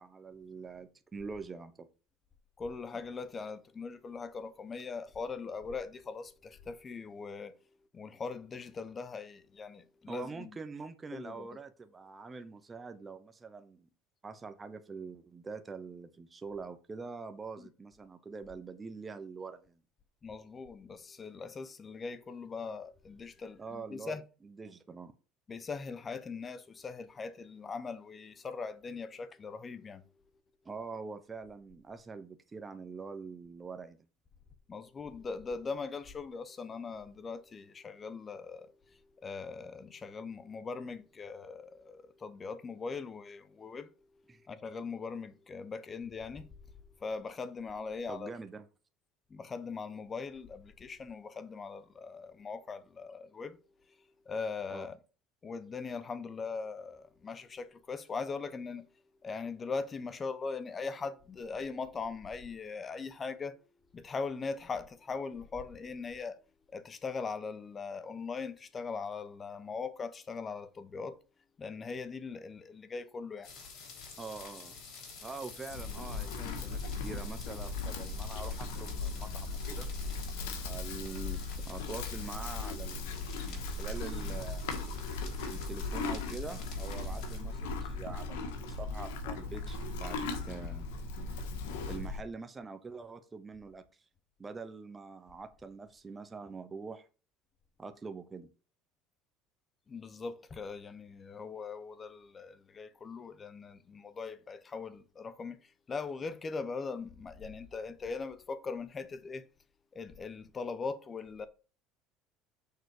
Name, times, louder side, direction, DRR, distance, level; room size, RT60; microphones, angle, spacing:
voice 1, 0.0-1.9 10.1-13.9 14.2-19.8 23.6-25.1 30.6-34.0 44.3-44.4 48.1-48.6 54.7-54.9 74.2-74.8 75.2-79.9 80.6-84.7 85.4-90.9 91.9-93.8 94.4-97.1 97.8-98.5, right 4 dB, 20° right, 0.8 m, -44 dB
voice 2, 2.6-7.5 7.9-10.6 11.1-11.5 17.6-17.7 20.2-24.2 25.5-30.0 34.7-43.9 44.5-46.5 47.0-48.3 49.3-53.6 54.3-55.0 55.4-58.8 59.2-63.6 63.9-66.4 66.7-71.2 71.6-73.5 99.9-109.4 109.9-111.5, left 4 dB, 25° left, 1.0 m, -40 dB
sound 1, 73.4-87.4, left 5 dB, 60° left, 4.4 m, -49 dB
Livestock farm animals working animals, 75.7-92.2, left 3 dB, 90° left, 1.7 m, -38 dB
6.7 x 4.0 x 6.5 m
supercardioid pair, 110°, 0 cm